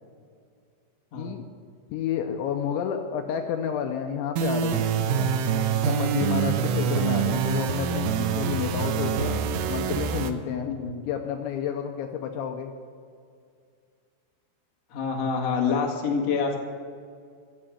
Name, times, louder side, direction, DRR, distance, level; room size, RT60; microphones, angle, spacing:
voice 1, 1.9-5.3 5.9-9.4 9.7-10.7 11.1-12.7, left 8 dB, 80° left, 4 dB, 2.8 m, -30 dB
sound 1, 4.4-10.3, right 7 dB, 80° right, 3.4 m, -25 dB
voice 2, 14.9-16.6, left 5 dB, 55° left, 0 dB, 1.9 m, -26 dB
15.0 x 7.6 x 9.0 m, 2.2 s
omnidirectional pair, 5.8 m